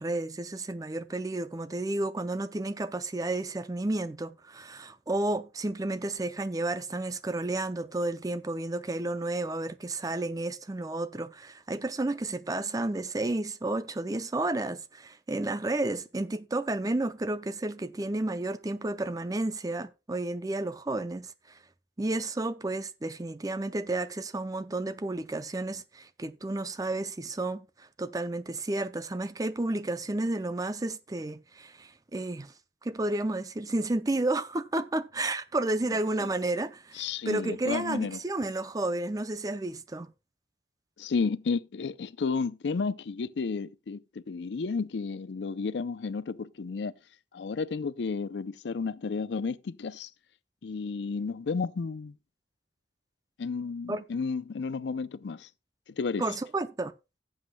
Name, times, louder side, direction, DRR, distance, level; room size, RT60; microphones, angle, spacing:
voice 1, 0.0-21.3 22.0-32.5 32.8-40.1 53.9-54.0 56.2-56.9, right 2 dB, 20° right, 0.5 m, -31 dB
voice 2, 37.0-38.2 41.0-44.0 44.3-46.9 47.3-50.1 50.6-52.1 53.4-55.5 56.0-56.2, left 4 dB, 75° left, 0.5 m, -32 dB
16.5 x 7.9 x 2.2 m
head